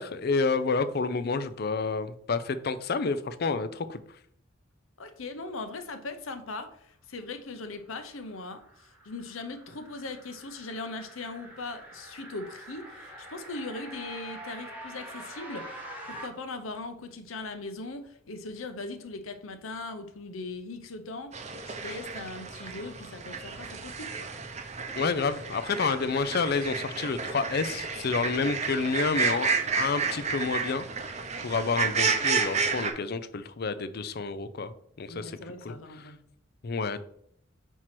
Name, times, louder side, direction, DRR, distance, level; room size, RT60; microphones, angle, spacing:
voice 1, 0.0-4.0 25.0-30.8 31.4-34.7 35.0-35.4 35.6-36.1 36.6-37.0, left 4 dB, 50° left, 13 dB, 0.5 m, -29 dB
voice 2, 5.0-21.4 21.6-24.3 35.1-36.2, left 3 dB, 80° left, 8 dB, 0.9 m, -39 dB
sound 1, 7.9-16.3, right 1 dB, 10° right, 1.2 m, -45 dB
sound 2, 21.3-32.9, right 5 dB, 35° right, 0.7 m, -31 dB
4.6 x 4.5 x 5.9 m, 0.68 s
head